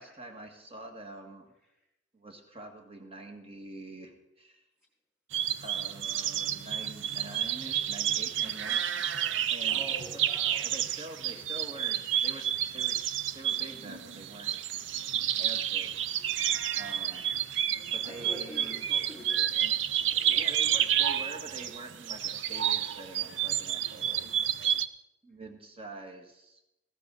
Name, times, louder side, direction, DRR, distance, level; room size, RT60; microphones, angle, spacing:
voice 1, 0.0-1.5 2.1-4.6 5.6-8.8 9.5-9.8 10.6-13.1 13.3-14.5 15.4-16.0 16.8-17.2 17.9-18.8 20.3-24.3 25.2-26.6, right 2 dB, 30° right, 4 dB, 1.6 m, -45 dB
sound 1, 5.3-24.9, right 10 dB, 70° right, 0.5 m, -30 dB
voice 2, 9.3-10.7 17.1-17.2 18.0-20.5, left 1 dB, 5° right, -2 dB, 4.0 m, -47 dB
15.5 x 13.0 x 4.0 m, 0.88 s
head